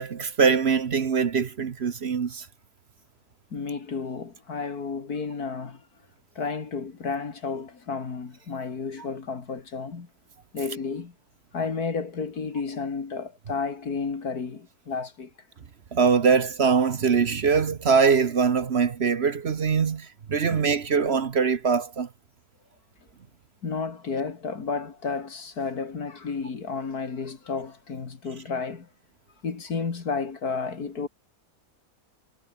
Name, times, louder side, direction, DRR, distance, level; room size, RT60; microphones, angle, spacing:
voice 1, 0.0-2.5 15.9-22.1, right 6 dB, 45° right, 1.1 m, -22 dB
voice 2, 3.5-5.8 6.4-10.1 10.5-11.1 11.5-15.3 20.5-20.8 23.6-28.9 29.4-31.1, left 5 dB, 60° left, 2.7 m, -32 dB
omnidirectional pair, 1.8 m